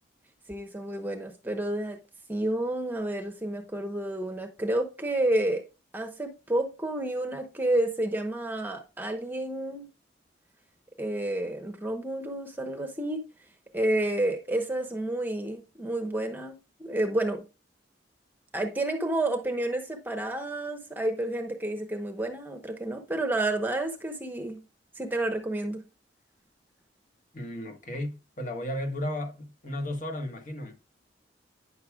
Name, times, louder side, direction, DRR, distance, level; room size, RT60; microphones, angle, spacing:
voice 1, 0.5-2.0 2.3-5.6 5.9-9.9 11.0-13.2 13.7-17.4 18.5-24.6 25.0-25.8, right 1 dB, 10° right, 0.9 m, -30 dB
voice 2, 27.3-30.7, left 1 dB, 45° left, 1.5 m, -34 dB
9.8 x 6.6 x 2.3 m
head